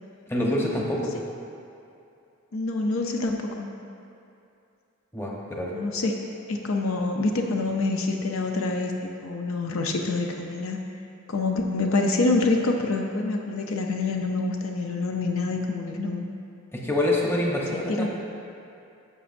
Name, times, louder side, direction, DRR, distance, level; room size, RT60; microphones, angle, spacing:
voice 1, 0.3-1.1 5.1-5.7 16.7-18.1, left 1 dB, 10° left, -3 dB, 0.9 m, -26 dB
voice 2, 2.5-3.7 5.7-6.2 6.5-10.8 11.3-16.2 17.7-18.1, left 3 dB, 65° left, 2 dB, 0.6 m, -26 dB
11.0 x 6.9 x 2.6 m, 2.6 s
head